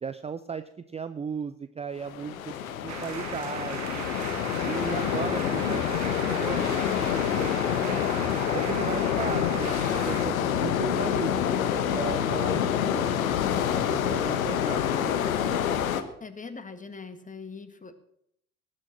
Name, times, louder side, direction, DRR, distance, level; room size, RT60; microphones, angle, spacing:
voice 1, 0.0-2.5 2.8-4.1 4.6-6.0 6.4-7.0 7.3-8.1 8.5-13.2 13.9-15.3, right 6 dB, 15° right, 12 dB, 0.6 m, -36 dB
sound 1, 2.1-16.0, left 9 dB, 75° left, 1.2 m, -27 dB
sound 2, 2.9-10.3, right 8 dB, 40° right, 2.0 m, -39 dB
voice 2, 16.2-17.9, left 4 dB, 20° left, 11 dB, 1.8 m, -41 dB
19.0 x 6.4 x 7.5 m, 0.71 s
figure-of-eight pair, 65°, 41 cm